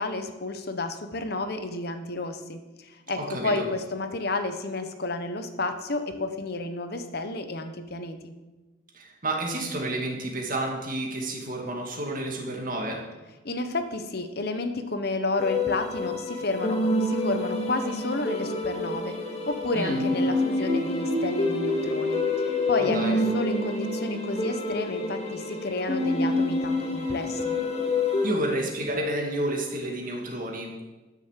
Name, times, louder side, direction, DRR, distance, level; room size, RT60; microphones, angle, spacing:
voice 1, 0.0-8.3 13.4-27.5, left 2 dB, 50° left, 8 dB, 1.1 m, -31 dB
voice 2, 3.2-3.6 8.9-13.0 19.7-20.0 22.8-23.1 28.2-30.9, right 1 dB, 40° right, 0 dB, 2.4 m, -30 dB
sound 1, 15.4-28.3, left 2 dB, 30° left, 2.2 m, -27 dB
12.5 x 7.2 x 7.5 m, 1.2 s
head